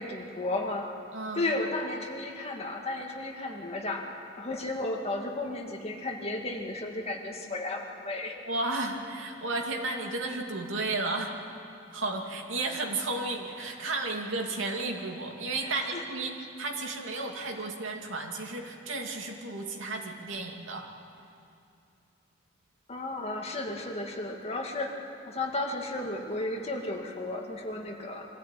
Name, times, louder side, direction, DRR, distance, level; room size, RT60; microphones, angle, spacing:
voice 1, 0.0-1.0 1.3-8.4 15.6-16.0 22.9-28.3, left 2 dB, 35° left, 1 dB, 2.2 m, -34 dB
voice 2, 1.1-1.5 8.4-11.4 11.9-16.3 16.6-20.9, right 2 dB, 80° right, 1 dB, 2.5 m, -33 dB
24.0 x 15.5 x 9.2 m, 2.6 s
head